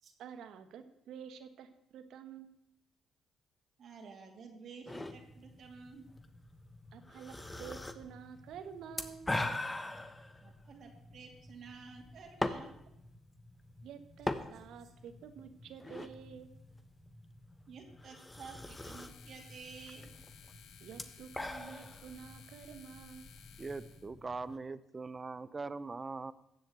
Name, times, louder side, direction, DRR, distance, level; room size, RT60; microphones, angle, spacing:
voice 1, 0.2-2.6 6.9-9.3 13.8-16.5 20.8-23.3, right 7 dB, 80° right, 10 dB, 1.4 m, -49 dB
voice 2, 3.8-6.1 10.4-12.7 17.7-20.1, right 5 dB, 60° right, 2 dB, 2.6 m, -51 dB
sound 1, 4.9-24.6, left 2 dB, 15° left, 1.2 m, -43 dB
sound 2, 18.6-24.1, left 8 dB, 70° left, 1.2 m, -58 dB
voice 3, 23.6-26.3, right 3 dB, 30° right, 16 dB, 0.7 m, -41 dB
15.0 x 7.8 x 8.0 m, 0.81 s
cardioid pair, 90°, 0 cm